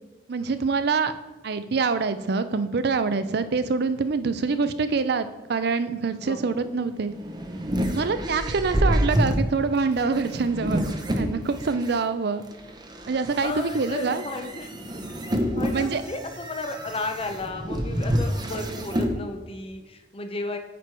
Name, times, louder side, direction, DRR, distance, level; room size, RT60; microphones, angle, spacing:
voice 1, 0.3-1.1 1.4-7.1 7.9-12.4 13.1-14.2 15.7-16.0, right 4 dB, 65° right, 11 dB, 0.5 m, -25 dB
voice 2, 6.2-6.6 13.4-14.7 14.9-15.0 15.5-20.6, left 2 dB, 35° left, 6 dB, 0.7 m, -34 dB
sound 1, 6.9-11.9 12.5-19.1, equal, 25° right, 0.7 m, -28 dB
9.1 x 4.6 x 4.6 m, 1.2 s
head